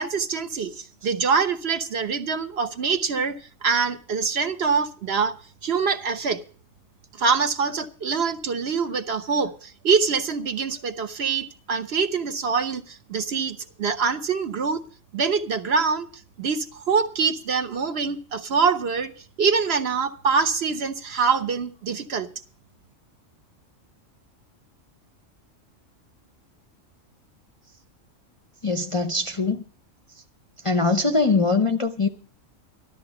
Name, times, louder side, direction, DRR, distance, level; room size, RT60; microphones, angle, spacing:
voice 1, 0.0-5.4 5.6-6.4 7.2-14.8 15.1-16.1 16.4-19.1 19.4-22.3, right 5 dB, 55° right, 1.2 m, -24 dB
voice 2, 28.6-29.6 30.6-32.1, left 3 dB, 35° left, 0.6 m, -22 dB
13.5 x 13.0 x 4.9 m
omnidirectional pair, 1.3 m